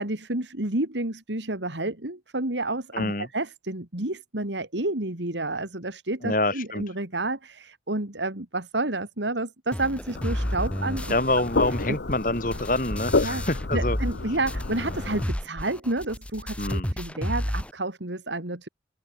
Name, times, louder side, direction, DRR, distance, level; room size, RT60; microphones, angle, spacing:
voice 1, 0.0-11.1 11.9-12.0 13.2-13.4 13.7-18.7, right 2 dB, 85° right, 3.0 m, -30 dB
voice 2, 2.9-3.3 6.2-6.8 11.1-14.0 16.6-17.0, left 2 dB, 45° left, 3.9 m, -26 dB
sound 1, 9.7-14.2 14.5-17.7, equal, 5° left, 1.3 m, -31 dB
sound 2, 10.1-15.2, left 3 dB, 75° left, 1.0 m, -30 dB
open air
head